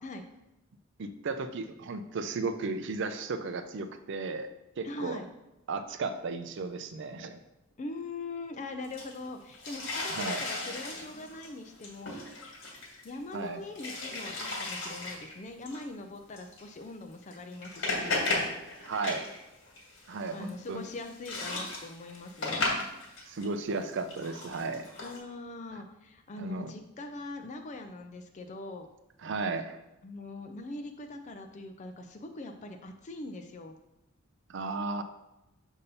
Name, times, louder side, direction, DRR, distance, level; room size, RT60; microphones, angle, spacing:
voice 1, 1.0-4.5 4.8-5.2 5.7-7.4 10.1-10.4 13.3-13.6 18.8-19.2 20.1-20.8 23.3-24.9 26.4-26.7 29.2-29.8 34.5-35.0, right 3 dB, 55° right, 9 dB, 0.4 m, -34 dB
voice 2, 4.8-5.3 7.8-12.2 13.0-18.2 20.3-22.7 25.0-28.9 30.0-33.8, left 2 dB, 35° left, 5 dB, 0.4 m, -42 dB
sound 1, 8.8-13.4 13.8-15.4 15.7-15.8 16.4-16.6 17.2-19.4 19.7-23.5 23.8-25.2, left 2 dB, 60° left, 1.6 m, -35 dB
6.9 x 2.7 x 5.4 m, 0.93 s
head